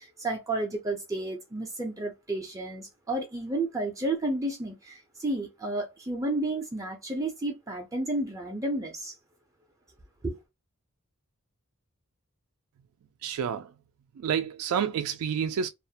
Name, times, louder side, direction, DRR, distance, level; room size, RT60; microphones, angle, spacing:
voice 1, 0.0-9.2 10.2-10.4, right 2 dB, 15° right, 0.4 m, -31 dB
voice 2, 13.2-13.7 14.2-15.7, right 7 dB, 80° right, 0.3 m, -29 dB
2.3 x 2.1 x 2.7 m
head